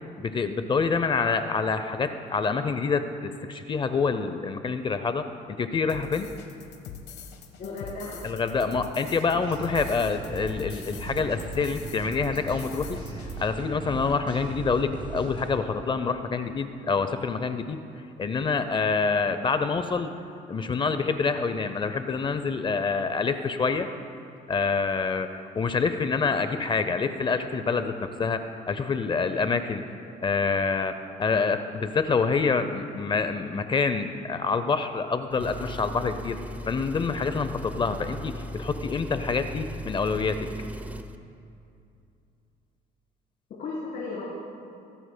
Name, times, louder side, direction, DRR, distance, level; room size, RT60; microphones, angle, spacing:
voice 1, 0.2-6.3 8.2-13.0 13.4-17.8 18.2-20.1 20.5-23.9 24.5-29.8 30.2-36.4 36.7-40.5, left 4 dB, 30° left, 9 dB, 0.5 m, -27 dB
sound 1, 5.9-13.4, left 7 dB, 80° left, 1.3 m, -43 dB
voice 2, 7.6-8.2 43.6-44.3, left 3 dB, 55° left, -7 dB, 3.5 m, -34 dB
sound 2, 9.5-15.5, right 3 dB, 25° right, 2.8 m, -38 dB
Engine, 35.3-41.2, equal, 10° right, 0.6 m, -37 dB
24.5 x 12.5 x 2.2 m, 2.6 s
cardioid pair, 110°, 17 cm